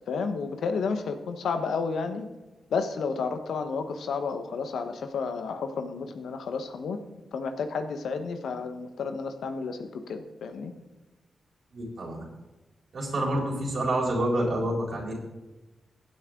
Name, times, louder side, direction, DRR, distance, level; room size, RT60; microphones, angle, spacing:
voice 1, 0.1-2.3 2.7-7.0 7.3-10.7, left 5 dB, 85° left, 8 dB, 1.3 m, -31 dB
voice 2, 11.7-12.2 12.9-15.1, right 1 dB, 65° right, -3 dB, 4.3 m, -28 dB
15.5 x 8.4 x 3.8 m, 1.1 s
cardioid pair, 55°, 0 cm